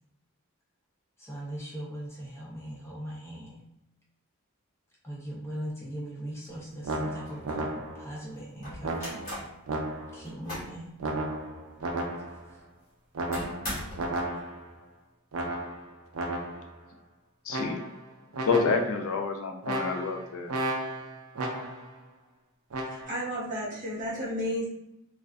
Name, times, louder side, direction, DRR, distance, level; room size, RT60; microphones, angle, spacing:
voice 1, 1.2-3.6 5.0-9.3 10.1-10.9 12.5-12.6, equal, 10° left, -4 dB, 0.5 m, -40 dB
sound 1, 6.5-6.6 6.9-7.7 8.6-9.6 10.1-10.8 11.3-11.4 11.8-11.9 13.3-14.2, left 1 dB, 45° left, 1.2 m, -39 dB
sound 2, 6.8-8.2 8.8-10.3 11.0-12.5 13.2-14.8 15.3-16.8 17.5-18.1 18.3-19.1 19.6-22.0 22.7-23.1, right 1 dB, 85° right, 0.5 m, -34 dB
voice 2, 17.5-17.8 18.5-20.6, left 4 dB, 75° left, 3 dB, 0.4 m, -28 dB
voice 3, 23.1-24.7, equal, 40° right, -7 dB, 1.0 m, -32 dB
2.4 x 2.3 x 2.2 m, 0.84 s
head